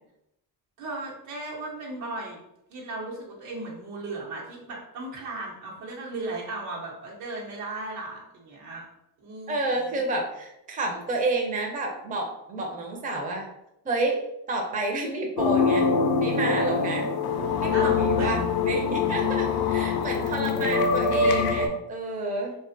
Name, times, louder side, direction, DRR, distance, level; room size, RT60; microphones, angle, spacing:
voice 1, 0.8-2.4 2.7-8.8 9.2-10.0 17.7-18.3, right 2 dB, 90° right, -3 dB, 1.0 m, -36 dB
voice 2, 9.5-13.5 13.8-15.9 16.2-17.1 17.6-22.5, right 2 dB, 20° right, 1 dB, 0.5 m, -30 dB
sound 1, 15.4-21.7, left 5 dB, 50° left, 0.5 m, -24 dB
2.4 x 2.3 x 2.5 m, 0.84 s
supercardioid pair, 80°, 49 cm